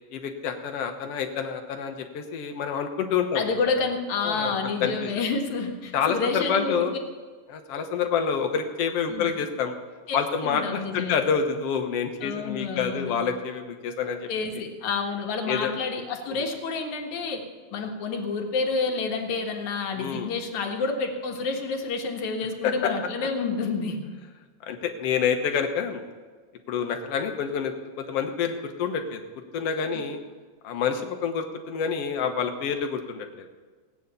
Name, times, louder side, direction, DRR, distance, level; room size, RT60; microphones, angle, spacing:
voice 1, 0.1-3.4 4.2-4.5 4.8-5.1 5.9-6.9 7.5-9.7 10.1-14.3 15.5-15.7 16.3-16.5 20.0-20.3 22.6-22.9 24.7-26.0 26.7-29.2 29.5-30.2 30.6-33.5, left 7 dB, 60° left, 5 dB, 2.1 m, -27 dB
voice 2, 3.3-6.9 9.1-9.3 10.1-10.2 10.4-11.2 12.2-13.2 14.3-17.4 17.7-24.0 29.9-30.0, left 4 dB, 80° left, 2 dB, 3.0 m, -29 dB
17.0 x 9.4 x 7.0 m, 1.4 s
omnidirectional pair, 3.3 m